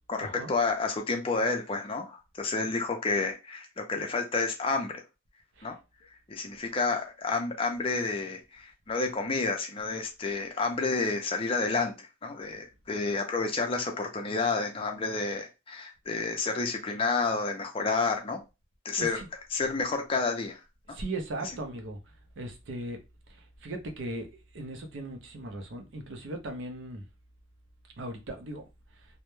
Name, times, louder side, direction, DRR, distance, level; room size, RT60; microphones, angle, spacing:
voice 1, 0.1-4.9 5.6-5.8 6.3-18.4 18.8-19.2 19.5-20.6, left 3 dB, 25° left, 0.4 m, -30 dB
voice 2, 20.9-22.0 22.4-23.0 23.3-24.3 24.5-27.0 28.0-28.6, right 2 dB, 65° right, 0.5 m, -38 dB
2.1 x 2.1 x 3.0 m
head